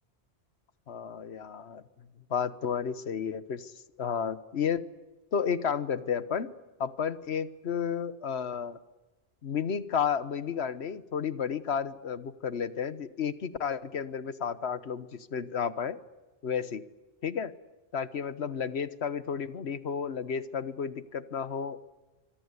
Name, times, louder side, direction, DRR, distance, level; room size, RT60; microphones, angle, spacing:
voice 1, 0.9-1.8 2.3-3.7 4.0-4.8 5.3-6.5 6.8-8.8 9.4-16.0 16.4-16.8 17.2-17.5 17.9-21.8, left 7 dB, 80° left, 14 dB, 1.4 m, -32 dB
25.0 x 25.0 x 8.2 m, 1.1 s
omnidirectional pair, 1.1 m